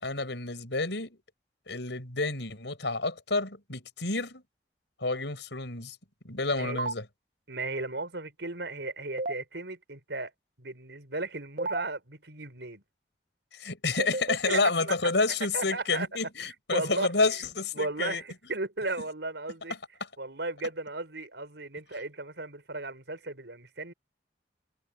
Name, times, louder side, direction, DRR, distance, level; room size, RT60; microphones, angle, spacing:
voice 1, 0.0-1.2 1.7-4.4 5.0-6.0 6.2-7.1 13.5-18.2, left 3 dB, 85° left, 5.6 m, -29 dB
sound 1, 6.8-6.9 9.2-9.3 11.6-11.8 14.0-14.4, right 2 dB, 50° right, 0.5 m, -30 dB
voice 2, 7.5-10.3 10.6-12.8 14.5-15.1 15.5-16.1 16.4-17.1 17.7-19.7 20.2-23.9, right 2 dB, 80° right, 5.0 m, -35 dB
head